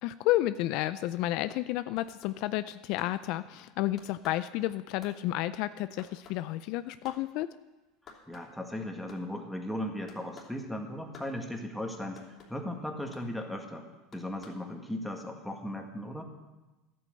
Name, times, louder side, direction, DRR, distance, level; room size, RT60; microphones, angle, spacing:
voice 1, 0.0-7.5, left 15 dB, 60° left, 14 dB, 0.4 m, -31 dB
sound 1, 1.9-3.7 4.0-7.2 7.5-7.6 7.9-8.7 8.9-9.5 10.1-10.6 11.1-11.3 12.2-12.6 13.1-13.3 14.1-14.6, left 5 dB, 40° left, 3.1 m, -53 dB
voice 2, 8.3-12.2 12.5-13.9 14.1-16.2, left 1 dB, 5° left, 2 dB, 1.9 m, -37 dB
12.0 x 8.5 x 7.8 m, 1.1 s
supercardioid pair, 110°, 0 cm